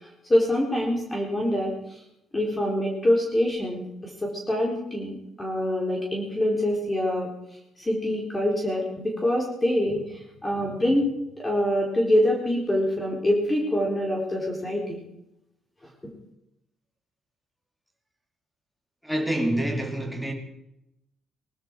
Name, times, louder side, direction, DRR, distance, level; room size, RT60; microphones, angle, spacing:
voice 1, 0.3-2.0 2.3-7.3 7.8-11.1 11.4-15.0, left 1 dB, 20° left, 3.9 m, -25 dB
voice 2, 19.0-20.3, right 1 dB, ahead, 3.0 m, -27 dB
20.5 x 12.5 x 4.7 m
cardioid pair, 90°, 0 cm